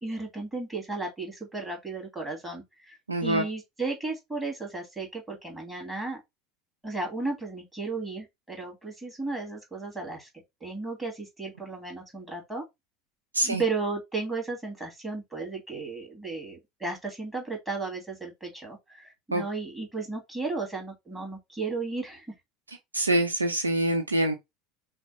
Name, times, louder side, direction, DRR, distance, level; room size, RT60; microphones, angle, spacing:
voice 1, 0.0-6.2 6.8-10.3 10.6-12.6 13.4-22.3, right 3 dB, 10° right, 2.5 m, -34 dB
voice 2, 3.1-3.4 13.3-13.6 19.3-19.4 22.9-24.3, right 1 dB, 85° right, 0.8 m, -25 dB
5.9 x 2.1 x 4.2 m
figure-of-eight pair, 75°, 0 cm